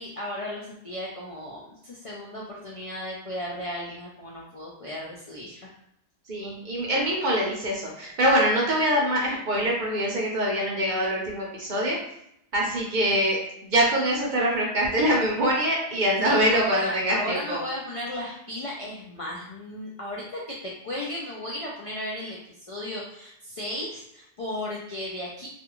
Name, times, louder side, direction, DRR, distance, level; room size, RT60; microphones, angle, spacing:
voice 1, 0.0-5.7 16.2-25.5, left 1 dB, 60° left, -4 dB, 0.3 m, -35 dB
voice 2, 6.3-12.0 12.5-17.6, equal, 50° right, -3 dB, 0.6 m, -24 dB
2.4 x 2.3 x 2.9 m, 0.75 s
omnidirectional pair, 1.2 m